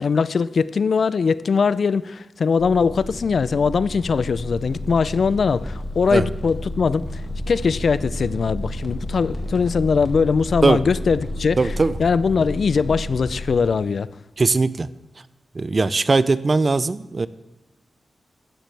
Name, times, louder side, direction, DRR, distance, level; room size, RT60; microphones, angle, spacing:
voice 1, 0.0-7.2 7.5-11.7 12.0-14.1, left 5 dB, 65° left, 0.3 m, -21 dB
sound 1, 2.6-13.6, left 1 dB, 40° left, 2.0 m, -31 dB
voice 2, 11.6-11.9 14.4-14.9 15.5-17.3, right 3 dB, 40° right, 0.4 m, -19 dB
13.5 x 9.1 x 3.3 m
cardioid pair, 65°, 0 cm